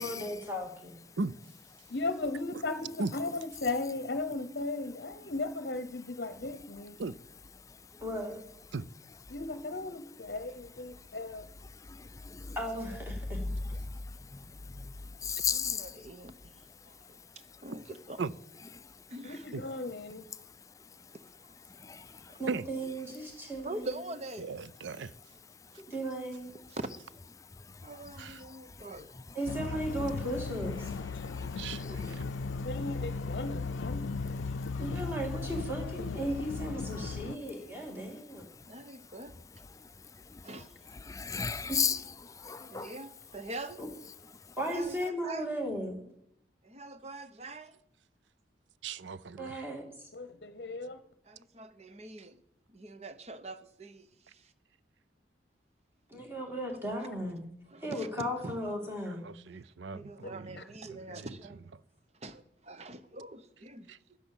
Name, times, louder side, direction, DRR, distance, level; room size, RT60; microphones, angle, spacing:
voice 1, 0.0-1.0 8.0-8.4 12.6-13.4 22.4-23.9 25.8-26.5 29.3-30.9 34.8-38.5 41.7-41.9 43.8-43.9 44.6-46.1 49.4-50.1 56.1-57.5 57.8-59.3, right 1 dB, 10° right, 2.6 m, -36 dB
voice 2, 1.9-7.0 9.3-11.5 19.2-20.2 32.6-34.0 50.1-51.0 60.6-60.7, left 2 dB, 55° left, 0.8 m, -36 dB
voice 3, 11.8-12.6 13.4-14.0 14.3-14.9 15.2-15.9 21.8-22.3 27.7-27.8 31.2-32.2 40.3-40.5 41.1-42.9, left 6 dB, 15° left, 0.4 m, -35 dB
voice 4, 15.5-18.2 19.1-19.5 21.4-21.6 22.3-22.4 23.6-24.5 26.7-26.9 27.8-29.1 38.6-39.5 40.4-40.8 42.6-43.8 44.6-45.5 46.6-47.8 51.2-52.4 52.7-54.5 57.7-58.1 58.4-58.6 59.5-61.6 62.1-64.2, right 2 dB, 35° right, 0.9 m, -44 dB
voice 5, 24.4-25.1 28.2-28.4 31.6-32.2 37.0-37.1 48.8-49.7 59.1-60.6 60.9-61.3 63.9-64.0, right 4 dB, 75° right, 0.5 m, -38 dB
sound 1, 29.5-37.4, left 4 dB, 90° left, 0.5 m, -36 dB
11.0 x 10.5 x 7.2 m
head